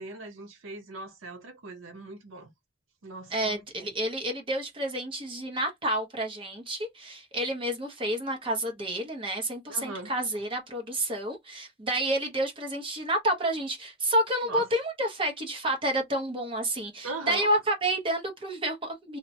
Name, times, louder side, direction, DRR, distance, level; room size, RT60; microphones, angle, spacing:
voice 1, 0.0-2.5 3.0-3.9 9.7-10.1 14.5-14.6 17.0-17.5, right 2 dB, 85° right, 0.7 m, -40 dB
voice 2, 3.3-19.2, right 1 dB, 25° right, 0.7 m, -29 dB
2.7 x 2.1 x 2.6 m
head